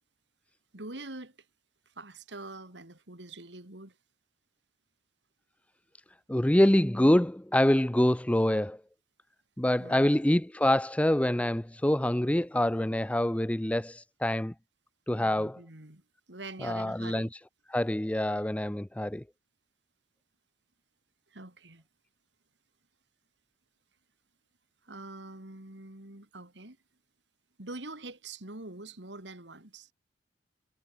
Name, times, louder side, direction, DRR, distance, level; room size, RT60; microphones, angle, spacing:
voice 1, 0.7-1.4 1.9-4.0 9.8-10.1 15.2-16.0 16.3-17.3 21.3-21.8 24.8-26.8 27.6-29.9, right 2 dB, 80° right, 3.7 m, -44 dB
voice 2, 6.3-8.8 9.6-14.5 15.1-15.6 16.6-17.3 17.7-19.2, left 1 dB, 10° left, 0.6 m, -25 dB
head